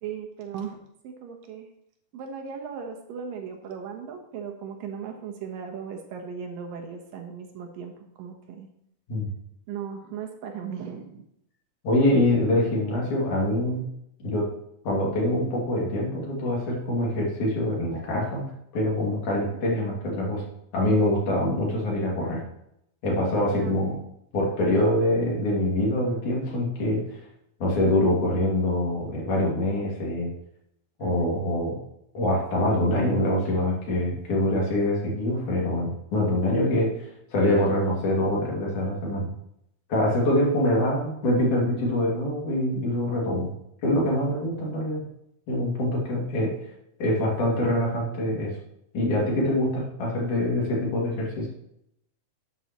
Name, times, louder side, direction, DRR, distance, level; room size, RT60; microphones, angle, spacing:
voice 1, 0.0-0.8 1.0-1.7 2.1-8.7 9.7-11.3 23.5-24.0 31.0-31.3, right 7 dB, 80° right, 3 dB, 2.9 m, -37 dB
voice 2, 11.8-13.9 14.2-14.5 14.9-18.5 18.7-20.4 20.7-22.4 23.0-24.0 24.3-27.0 27.6-30.3 31.0-31.8 32.1-37.1 37.3-39.3 39.9-43.5 43.8-45.0 45.5-46.5 47.0-48.5 48.9-51.5, left 1 dB, 65° left, -3 dB, 3.8 m, -24 dB
11.5 x 8.0 x 3.0 m, 0.78 s
omnidirectional pair, 3.9 m